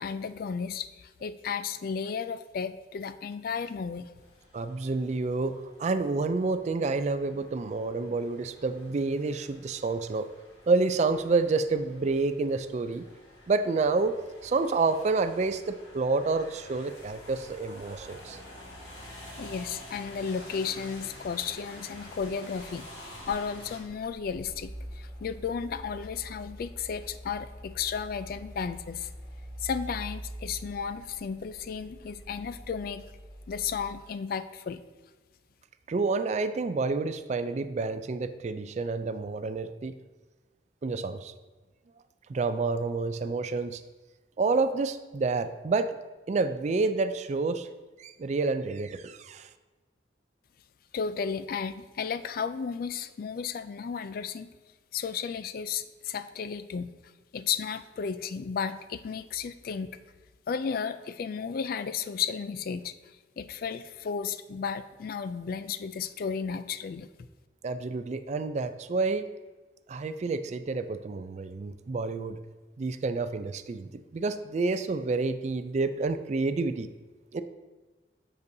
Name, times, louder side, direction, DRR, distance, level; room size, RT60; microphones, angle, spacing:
voice 1, 0.0-4.1 19.0-22.9 23.3-29.1 29.6-33.0 33.5-34.8 50.9-54.5 54.9-56.9 57.3-59.9 60.5-67.1, left 6 dB, 50° left, 13 dB, 0.3 m, -34 dB
sound 1, 4.1-23.8, left 1 dB, 65° left, 1.9 m, -49 dB
voice 2, 4.5-10.3 10.7-13.0 13.5-14.2 14.4-18.4 35.9-39.9 40.8-41.3 42.3-43.8 44.4-46.0 46.3-47.7 48.0-49.5 67.6-69.3 69.9-72.4 72.8-76.9 77.3-77.4, right 3 dB, 40° right, 10 dB, 0.3 m, -29 dB
Mechanical fan, 23.1-33.9, equal, 85° left, 2.2 m, -45 dB
8.0 x 6.7 x 2.7 m, 1.2 s
head